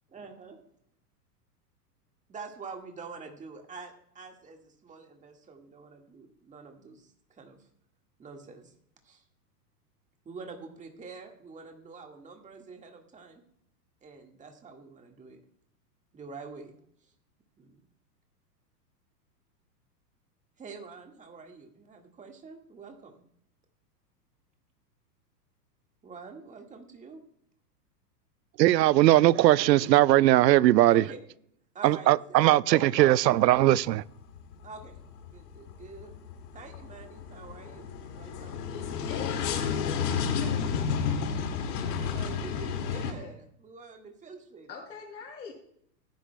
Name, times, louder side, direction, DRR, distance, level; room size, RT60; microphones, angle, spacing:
voice 1, 0.1-0.6 2.3-7.7 8.2-8.7 9.0-9.2 10.2-13.4 14.0-15.4 16.1-16.7 17.0-17.1 17.6-17.8 20.6-23.2 26.0-27.2 30.9-31.2 31.7-32.4 34.6-35.0 35.3-36.2 36.5-38.6 42.0-44.7, right 4 dB, 15° right, 1.7 m, -46 dB
voice 2, 28.6-31.0 31.8-34.0, right 15 dB, 85° right, 0.6 m, -20 dB
sound 1, 33.0-33.6 33.9-43.1, left 6 dB, 70° left, 2.3 m, -32 dB
voice 3, 38.7-40.7 43.1-43.3 44.7-45.5, left 5 dB, 85° left, 5.7 m, -43 dB
20.0 x 10.5 x 2.2 m
hypercardioid pair, 125°, 49 cm